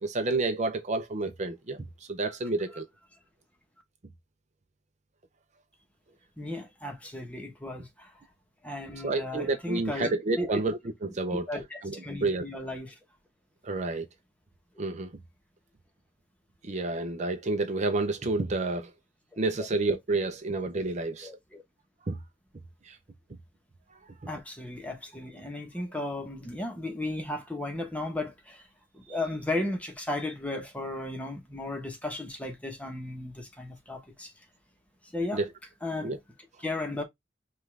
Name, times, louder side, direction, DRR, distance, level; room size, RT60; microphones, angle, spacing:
voice 1, 0.0-2.9 9.0-11.5 11.8-12.5 13.6-14.1 14.8-15.1 16.6-18.9 19.4-21.3 22.1-22.2 22.9-23.0 24.2-24.3 35.3-35.5 36.0-36.2, right 2 dB, 40° right, 0.6 m, -29 dB
voice 2, 6.4-8.1 8.6-10.5 11.3-12.9 19.6-19.7 21.2-21.6 24.3-28.6 28.9-34.3 35.1-35.4 35.8-36.1 36.6-37.0, left 2 dB, 10° left, 1.0 m, -35 dB
5.4 x 2.5 x 3.2 m
head